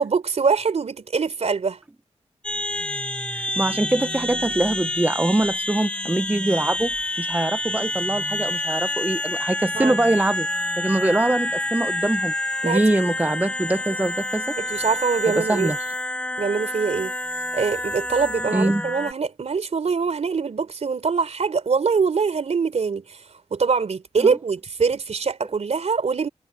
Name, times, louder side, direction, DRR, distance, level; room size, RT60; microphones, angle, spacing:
voice 1, 0.0-1.8 9.7-10.0 12.6-12.8 14.6-15.7 16.4-17.1 17.5-26.3, right 5 dB, 65° right, 3.6 m, -23 dB
sound 1, 2.4-19.1, left 1 dB, 10° left, 1.3 m, -28 dB
voice 2, 3.3-12.3 12.6-14.6 15.4-15.8 18.5-18.8 24.2-24.3, right 2 dB, 15° right, 0.6 m, -23 dB
wide cardioid pair, 105°, 12 cm